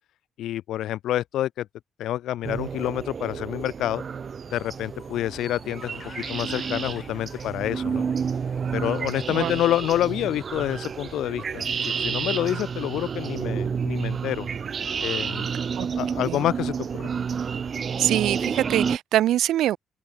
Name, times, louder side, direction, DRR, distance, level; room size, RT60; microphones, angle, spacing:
voice 1, 0.4-1.7 2.0-4.0 4.5-6.0 6.3-8.0 8.7-14.5 15.0-15.5 16.0-17.1, left 13 dB, 80° left, 0.3 m, -28 dB
sound 1, 2.4-19.0, right 6 dB, 45° right, 1.6 m, -30 dB
sound 2, 4.5-12.3, left 5 dB, 40° left, 5.7 m, -56 dB
sound 3, 5.8-9.7, left 8 dB, 60° left, 7.2 m, -50 dB
voice 2, 18.0-19.8, right 12 dB, 80° right, 0.9 m, -23 dB
cardioid pair, 90°, 0 cm